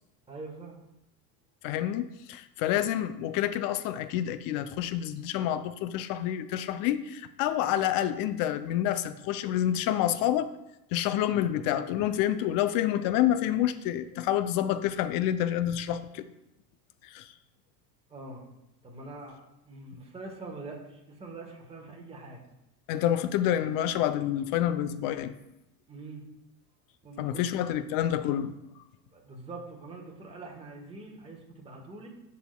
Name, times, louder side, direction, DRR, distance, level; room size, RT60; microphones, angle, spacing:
voice 1, 0.3-0.8 18.1-18.5 18.8-19.4 19.6-22.4 25.9-26.2 27.0-27.5 29.1-32.1, right 3 dB, 10° right, -1 dB, 1.5 m, -44 dB
voice 2, 1.6-10.5 10.9-16.2 17.0-17.3 22.9-25.3 27.2-28.5, left 11 dB, 45° left, 12 dB, 0.5 m, -28 dB
11.0 x 4.2 x 2.2 m, 0.87 s
hypercardioid pair, 100°, 48 cm